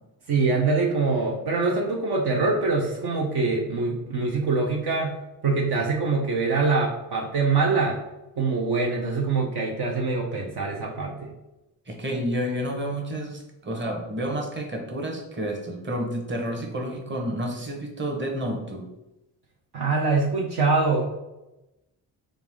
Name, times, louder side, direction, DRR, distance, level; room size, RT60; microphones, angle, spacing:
voice 1, 0.3-5.2 5.4-8.0 8.4-11.3 19.7-21.1, right 3 dB, 55° right, -1 dB, 0.7 m, -24 dB
voice 2, 11.9-18.8, equal, 25° right, 2 dB, 1.0 m, -30 dB
3.4 x 2.5 x 3.4 m, 0.96 s
supercardioid pair, 50°, 46 cm